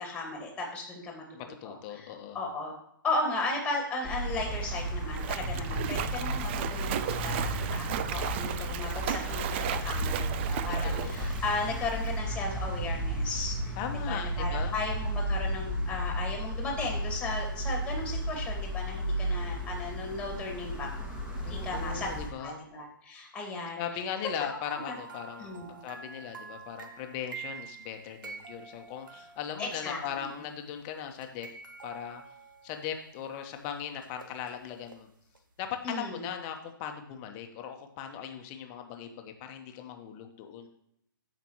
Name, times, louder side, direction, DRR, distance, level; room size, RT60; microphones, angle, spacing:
voice 1, 0.0-1.2 1.6-2.1 2.3-2.7 3.0-13.6 14.1-20.9 21.5-22.1 22.4-23.8 24.8-25.0 25.4-25.7 29.6-30.3 35.8-36.3, left 2 dB, 10° left, 1 dB, 2.2 m, -35 dB
voice 2, 1.3-2.4 6.8-7.1 10.8-11.2 13.8-14.8 21.4-22.7 23.8-25.5 25.8-31.5 31.8-32.2 32.6-35.1 35.6-40.7, left 8 dB, 30° left, 5 dB, 1.1 m, -39 dB
sound 1, 4.0-22.3, right 1 dB, 10° right, 1.7 m, -33 dB
Splash splatter, 4.3-12.2, right 11 dB, 30° right, 0.4 m, -36 dB
sound 2, 24.6-30.5 31.1-33.2 34.0-35.0 35.3-35.4, right 5 dB, 70° right, 1.2 m, -47 dB
14.0 x 5.2 x 3.1 m, 0.75 s
figure-of-eight pair, 130°, 11 cm